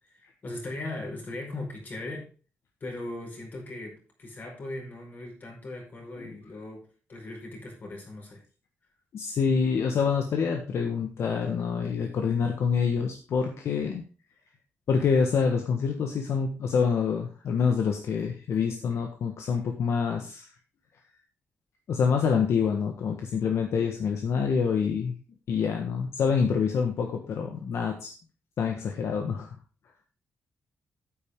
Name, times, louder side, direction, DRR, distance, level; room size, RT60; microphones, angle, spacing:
voice 1, 0.1-2.3 2.8-8.4, left 2 dB, 40° left, 0 dB, 4.9 m, -39 dB
voice 2, 9.1-14.0 14.9-20.5 21.9-25.1 25.5-28.1 28.6-29.5, left 6 dB, 65° left, 3 dB, 1.5 m, -26 dB
9.5 x 8.9 x 3.7 m, 0.37 s
wide cardioid pair, 140°, 5 cm